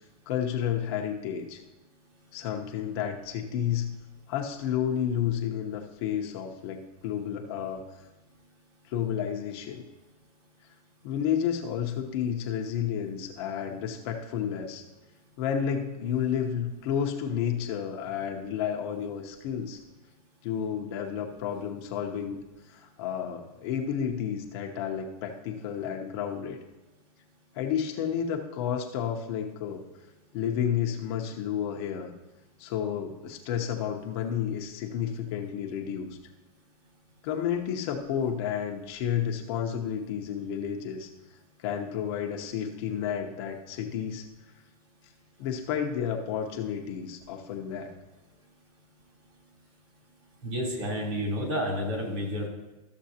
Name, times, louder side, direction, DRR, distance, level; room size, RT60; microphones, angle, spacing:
voice 1, 0.3-1.6 2.3-3.9 4.3-7.8 8.9-9.8 11.0-14.8 15.4-19.8 20.4-22.4 22.7-26.6 27.5-29.8 30.3-32.1 32.6-36.2 37.2-41.1 41.6-44.2 45.4-47.9, left 8 dB, 40° left, 2 dB, 0.8 m, -31 dB
voice 2, 50.4-52.5, equal, 50° right, -1 dB, 3.2 m, -30 dB
13.5 x 6.9 x 2.8 m, 1.1 s
supercardioid pair, 165°, 19 cm